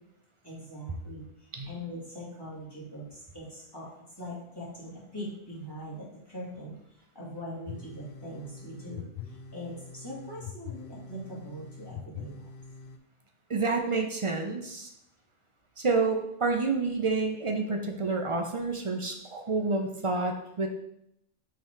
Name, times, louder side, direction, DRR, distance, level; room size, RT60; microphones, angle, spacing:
voice 1, 0.4-3.9 4.2-12.5, equal, 20° left, -7 dB, 2.2 m, -42 dB
sound 1, 7.7-13.0, left 6 dB, 60° left, 0.6 m, -44 dB
voice 2, 13.5-14.9 15.8-20.7, right 3 dB, 45° right, 4 dB, 0.4 m, -29 dB
5.7 x 3.8 x 4.5 m, 0.76 s
omnidirectional pair, 1.3 m